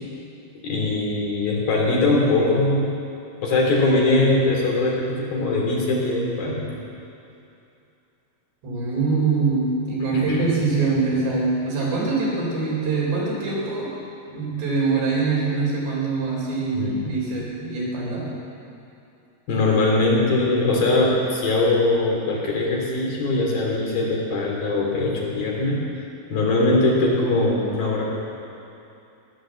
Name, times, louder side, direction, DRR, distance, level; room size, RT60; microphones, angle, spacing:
voice 1, 0.6-2.8 3.4-6.7 10.1-10.4 16.7-17.1 19.5-25.8 26.3-28.0, left 2 dB, 60° left, -3 dB, 4.5 m, -21 dB
voice 2, 8.6-13.9 14.3-18.3, right 4 dB, 85° right, -5 dB, 6.3 m, -24 dB
16.0 x 11.5 x 7.6 m, 2.7 s
omnidirectional pair, 4.7 m